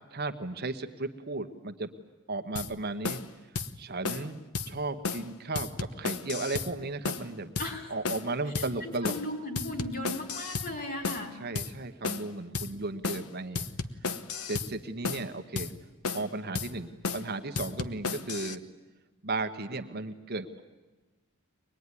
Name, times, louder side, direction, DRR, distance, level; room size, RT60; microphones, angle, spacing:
voice 1, 0.1-1.9 2.3-3.2 3.8-7.5 7.9-9.2 11.4-13.7 14.4-15.7 16.1-18.6 19.2-20.6, right 2 dB, 45° right, 7 dB, 1.1 m, -35 dB
sound 1, 2.6-2.7 3.0-3.3 3.6-3.7 4.0-4.3 4.5-4.7 5.0-5.3 5.6-6.7 7.0-7.3 7.6-7.7 8.0-8.3 8.6-8.7 9.0-9.3 9.6-10.7 11.0-11.3 11.6-11.7 12.0-12.3 12.5-12.7 13.0-13.3 13.6-14.7 15.0-15.3 15.6-15.7 16.0-16.3 16.6-16.7 17.0-17.3 17.6-18.6, left 4 dB, 80° left, 1.0 m, -33 dB
voice 2, 7.6-7.9 8.6-11.3, left 1 dB, 40° left, 3 dB, 4.6 m, -37 dB
23.0 x 21.0 x 9.7 m, 1.2 s
head